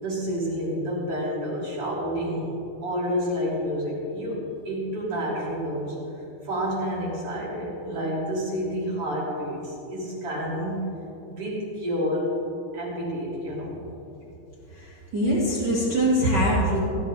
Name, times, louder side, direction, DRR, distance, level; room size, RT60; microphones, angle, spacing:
voice 1, 0.0-2.5 2.8-6.0 6.4-10.9 11.3-12.3 12.7-13.8, equal, 35° right, -5 dB, 3.5 m, -29 dB
voice 2, 14.8-16.8, right 1 dB, 75° right, -7 dB, 0.9 m, -23 dB
17.0 x 13.0 x 3.4 m, 2.9 s
omnidirectional pair, 5.3 m